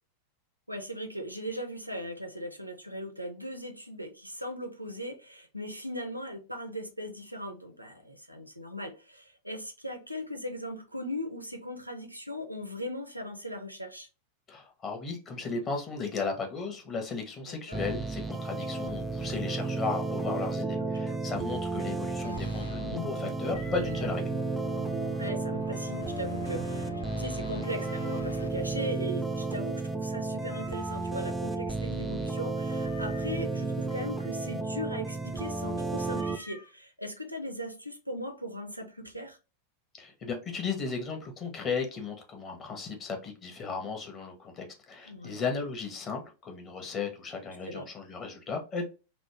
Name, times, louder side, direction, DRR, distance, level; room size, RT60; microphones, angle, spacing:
voice 1, 0.7-14.1 17.7-17.8 20.8-21.2 21.7-21.9 25.2-26.9 27.2-39.4 45.1-45.5 47.7-47.9, equal, 90° right, 0.5 m, -39 dB
voice 2, 14.5-24.2 40.0-48.8, left 4 dB, 25° left, 0.8 m, -35 dB
sound 1, 17.7-36.4, right 3 dB, 5° right, 0.4 m, -33 dB
sound 2, 22.2-28.5, left 3 dB, 75° left, 0.3 m, -45 dB
Meow, 23.5-24.2 27.7-28.4 30.5-31.3 32.7-33.5 36.1-36.7, equal, 60° left, 1.1 m, -50 dB
3.0 x 2.0 x 3.1 m
figure-of-eight pair, 90°, 0 cm